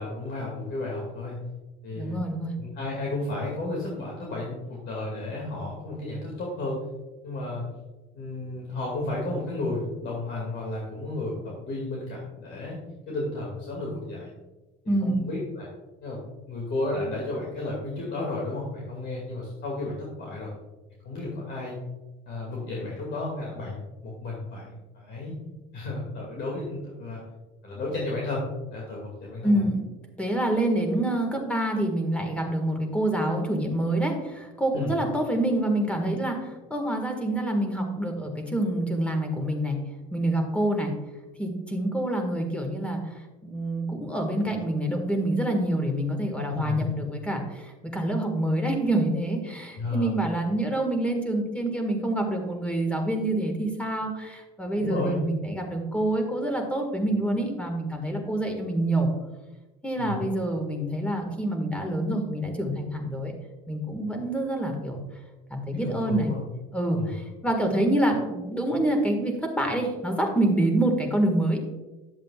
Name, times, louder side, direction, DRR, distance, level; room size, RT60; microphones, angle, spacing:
voice 1, 0.0-1.4 1.8-2.2 2.6-6.8 7.2-7.7 8.1-12.8 13.1-14.3 15.0-15.7 16.0-20.5 21.0-21.8 22.3-25.3 25.7-27.2 27.6-28.4 28.7-29.6 34.7-34.9 46.5-46.9 49.7-50.1 54.8-55.2 60.0-60.2 65.7-66.4 66.9-67.1, left 2 dB, 55° left, -3 dB, 2.3 m, -33 dB
voice 2, 2.0-2.5 14.9-15.2 29.4-29.8 30.2-39.8 40.1-40.9 41.4-43.1 43.4-59.1 59.8-63.3 63.7-65.0 65.5-66.3 66.7-71.6, right 1 dB, 5° left, 3 dB, 1.8 m, -26 dB
11.0 x 7.4 x 2.4 m, 1.1 s
cardioid pair, 110°, 21 cm